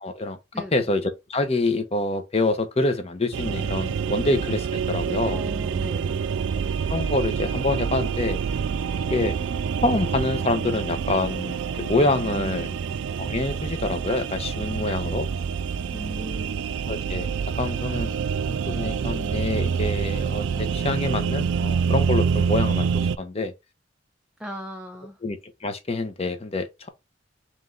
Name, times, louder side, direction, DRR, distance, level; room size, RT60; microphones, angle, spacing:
voice 1, 0.0-0.4 0.7-5.4 6.9-8.4 9.1-9.4 9.8-12.7 13.2-15.3 16.9-17.3 17.6-18.1 18.5-23.5 25.2-26.9, left 2 dB, 30° left, 0.7 m, -26 dB
sound 1, 3.3-23.2, right 6 dB, 65° right, 0.3 m, -27 dB
voice 2, 5.3-6.3 12.4-13.0 14.8-15.2 15.9-16.6 22.3-22.5 24.4-25.2, equal, 5° right, 0.5 m, -38 dB
3.5 x 3.1 x 3.8 m
head